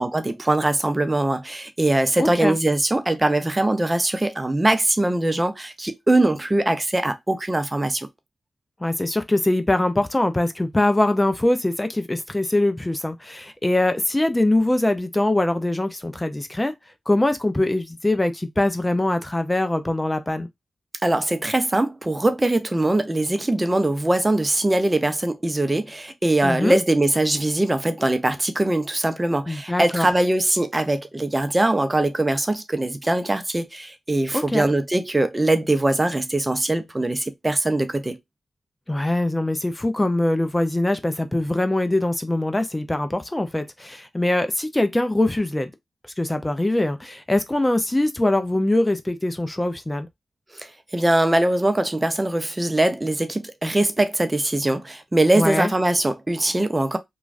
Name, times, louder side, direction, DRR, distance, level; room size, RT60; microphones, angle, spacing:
voice 1, 0.0-8.1 21.0-38.2 50.5-57.0, right 1 dB, 25° right, 0.6 m, -22 dB
voice 2, 2.2-2.6 8.8-16.7 17.1-20.5 26.4-26.8 29.5-30.1 34.3-34.7 38.9-45.7 46.2-50.1 55.3-55.7, left 1 dB, 20° left, 0.5 m, -22 dB
3.0 x 2.3 x 2.4 m
supercardioid pair, 40°, 0 cm